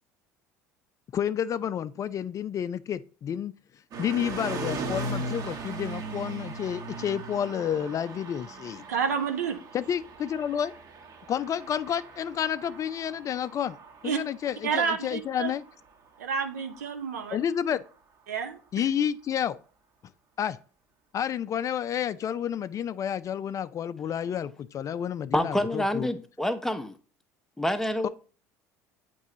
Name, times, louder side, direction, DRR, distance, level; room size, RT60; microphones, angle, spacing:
voice 1, 1.1-3.5 4.0-8.8 9.7-10.7 11.3-13.8 14.0-15.6 17.3-17.8 18.7-19.6 20.4-20.6 21.1-26.1 28.0-28.1, left 9 dB, 40° left, 0.3 m, -30 dB
sound 1, 3.9-17.9, right 3 dB, 45° right, 1.2 m, -39 dB
voice 2, 8.9-9.6 14.0-14.2 14.6-15.5 16.2-17.4 18.3-18.6, right 6 dB, 85° right, 0.8 m, -29 dB
voice 3, 25.3-27.0 27.6-28.1, left 1 dB, 5° left, 0.7 m, -27 dB
8.1 x 3.0 x 3.9 m
hypercardioid pair, 70°, 9 cm